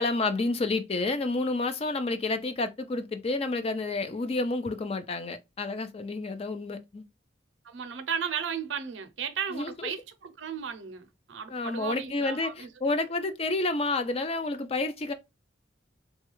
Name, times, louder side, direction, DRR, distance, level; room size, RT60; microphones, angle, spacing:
voice 1, 0.0-7.0 9.5-9.9 11.5-15.1, left 3 dB, 30° left, 0.4 m, -30 dB
voice 2, 7.6-12.7, right 7 dB, 80° right, 0.6 m, -35 dB
3.1 x 2.3 x 2.9 m
head